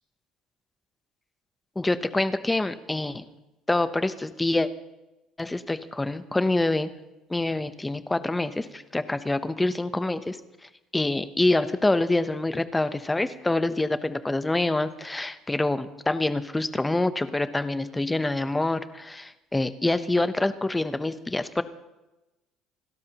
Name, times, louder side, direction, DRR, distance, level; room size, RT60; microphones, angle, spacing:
voice 1, 1.8-3.2 3.7-4.7 5.4-6.9 7.3-21.6, left 2 dB, 10° left, 12 dB, 0.7 m, -26 dB
29.0 x 12.5 x 2.9 m, 1.0 s
cardioid pair, 145°, 0 cm